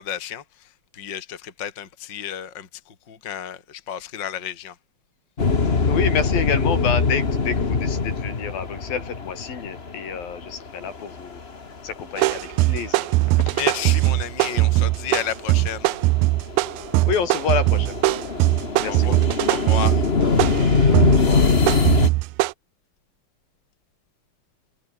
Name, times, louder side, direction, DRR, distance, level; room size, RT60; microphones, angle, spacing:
voice 1, 0.0-4.8 13.5-15.9 18.8-19.1 19.5-20.1, left 9 dB, 30° left, 3.0 m, -32 dB
sound 1, 5.4-13.0 13.3-14.3 14.7-22.1, left 4 dB, 50° left, 0.7 m, -23 dB
voice 2, 5.9-11.4 11.8-13.6 17.1-18.4 18.8-19.2 21.1-21.4, left 7 dB, 70° left, 5.1 m, -29 dB
sound 2, 12.2-22.5, right 20 dB, 85° right, 2.5 m, -20 dB
omnidirectional pair, 4.3 m